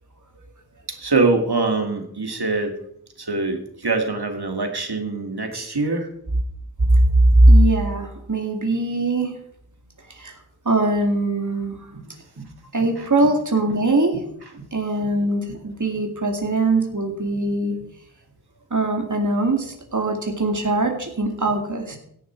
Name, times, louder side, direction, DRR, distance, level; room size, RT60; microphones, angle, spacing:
voice 1, 0.9-2.7 3.2-6.1 13.0-13.1, right 3 dB, 80° right, 5 dB, 2.5 m, -23 dB
voice 2, 7.3-9.3 10.1-10.3 10.7-11.9 12.7-14.2 14.5-17.8 18.7-22.0, right 2 dB, 50° right, 3 dB, 2.4 m, -20 dB
16.5 x 11.0 x 4.6 m, 0.71 s
wide cardioid pair, 50°, 38 cm